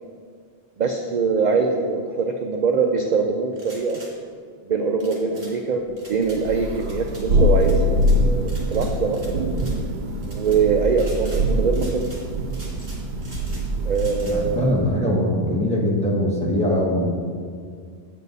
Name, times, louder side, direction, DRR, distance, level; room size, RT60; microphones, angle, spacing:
voice 1, 0.8-4.0 4.7-9.4 10.2-12.1 13.8-14.7, right 5 dB, 55° right, 3 dB, 0.6 m, -23 dB
sound 1, 3.5-4.1 5.0-5.5 6.0-6.4 6.8-7.2 7.6-8.2 8.5-9.3 9.5-9.8 10.2-10.6 10.9-11.4 11.7-12.2 12.5-13.6 13.9-14.4, right 1 dB, 70° right, 2.2 m, -44 dB
Thunder, 6.3-14.7, equal, 90° right, 0.9 m, -23 dB
voice 2, 14.2-17.1, left 1 dB, 5° left, -5 dB, 1.5 m, -22 dB
8.3 x 7.5 x 4.1 m, 2.1 s
omnidirectional pair, 1.0 m